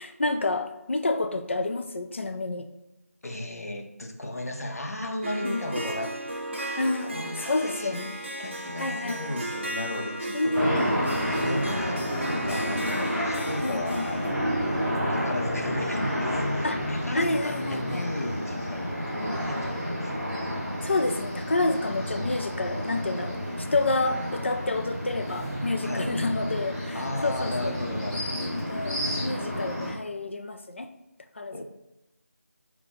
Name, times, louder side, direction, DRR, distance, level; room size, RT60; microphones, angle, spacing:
voice 1, 0.0-2.7 5.4-5.6 6.8-8.1 8.8-9.4 10.3-10.8 13.4-14.1 16.6-16.8 17.1-18.1 20.8-27.8 28.4-30.9 31.4-31.6, left 2 dB, 50° left, 6 dB, 0.4 m, -29 dB
voice 2, 3.2-8.0 8.4-10.9 11.4-14.4 15.1-20.7 25.8-26.2 26.9-28.5 31.5-31.6, left 1 dB, 70° left, 3 dB, 0.7 m, -35 dB
Harp, 5.2-14.3, right 1 dB, 45° right, 0.6 m, -35 dB
sound 1, 10.5-29.9, equal, ahead, 1.6 m, -30 dB
5.5 x 2.3 x 4.0 m, 0.95 s
figure-of-eight pair, 170°, 9 cm